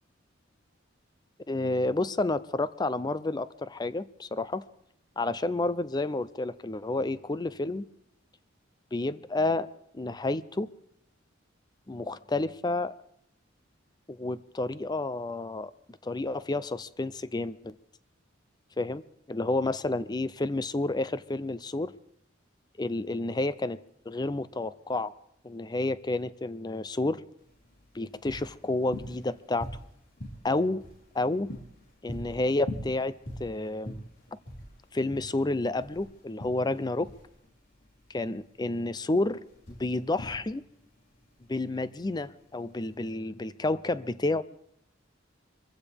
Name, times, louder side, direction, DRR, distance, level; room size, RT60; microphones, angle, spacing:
voice 1, 1.5-4.6 5.2-7.9 8.9-9.7 9.9-10.7 11.9-12.9 14.1-15.7 16.0-17.7 18.8-19.0 19.3-21.9 22.8-23.8 24.1-25.1 25.4-27.2 27.9-29.7 30.4-30.8 31.1-31.5 32.0-33.1 33.4-34.0 34.9-37.1 38.1-40.6 41.5-44.4, left 2 dB, 20° left, 0.5 m, -30 dB
sound 1, 27.4-43.0, equal, 75° left, 4.4 m, -44 dB
25.0 x 15.5 x 3.5 m
head